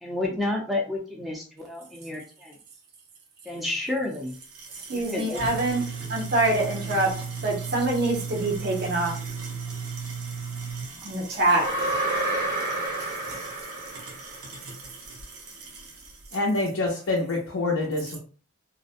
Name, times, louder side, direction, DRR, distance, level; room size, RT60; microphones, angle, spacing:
voice 1, 0.0-2.5 3.5-4.3 4.9-5.9, left 2 dB, ahead, -1 dB, 0.5 m, -31 dB
sound 1, 4.2-16.3, right 5 dB, 90° right, 0.6 m, -37 dB
voice 2, 4.9-9.4 11.0-12.0, right 2 dB, 45° right, -1 dB, 0.7 m, -25 dB
sound 2, 11.5-14.6, right 2 dB, 65° right, 1.2 m, -29 dB
voice 3, 16.3-18.2, left 2 dB, 70° left, -1 dB, 0.5 m, -26 dB
2.4 x 2.0 x 2.5 m, 0.38 s
head